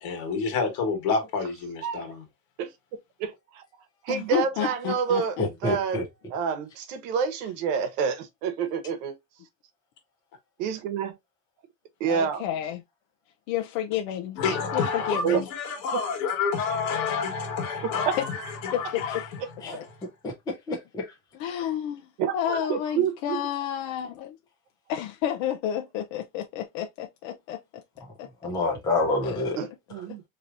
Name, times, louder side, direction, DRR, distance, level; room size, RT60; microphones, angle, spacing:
voice 1, 0.0-2.2 14.4-18.3 18.6-18.9 19.7-19.8, left 5 dB, 50° left, 1.4 m, -28 dB
voice 2, 1.8-2.1 2.6-2.7 3.2-3.6 4.0-5.4 5.6-6.0 6.3-9.1 10.6-11.2 12.0-12.4 15.2-15.4 15.9-16.0 18.1-18.2 22.2-23.5 29.6-30.2, right 7 dB, 80° right, 1.0 m, -28 dB
voice 3, 4.1-5.7 12.0-12.8 13.5-14.4 14.7-15.5 18.3-19.5 21.3-22.1 22.3-24.4 24.9-27.6 28.2-28.3 29.2-29.4, left 10 dB, 80° left, 0.6 m, -31 dB
voice 4, 5.4-6.0 19.6-19.8 20.5-21.1 28.4-29.6, left 2 dB, 10° left, 0.5 m, -27 dB
4.0 x 2.9 x 2.4 m
cardioid pair, 175°, 38 cm